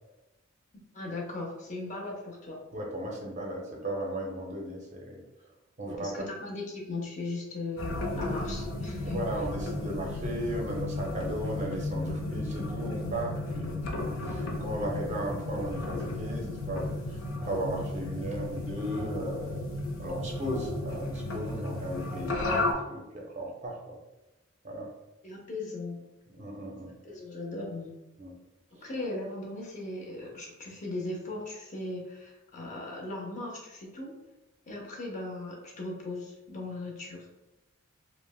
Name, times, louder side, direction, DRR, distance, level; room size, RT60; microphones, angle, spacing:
voice 1, 0.9-2.6 5.8-9.2 25.2-26.0 27.0-27.9 28.8-34.2 34.6-37.4, left 2 dB, 40° left, -1 dB, 0.6 m, -38 dB
voice 2, 2.7-5.2 5.8-6.3 9.0-19.6 20.0-24.0 24.6-24.9 26.4-26.9 28.2-28.4 28.8-28.9, right 1 dB, 35° right, -1 dB, 0.5 m, -36 dB
sound 1, 7.8-22.7, left 2 dB, 85° left, 0.5 m, -34 dB
3.1 x 2.0 x 2.2 m, 1.0 s
head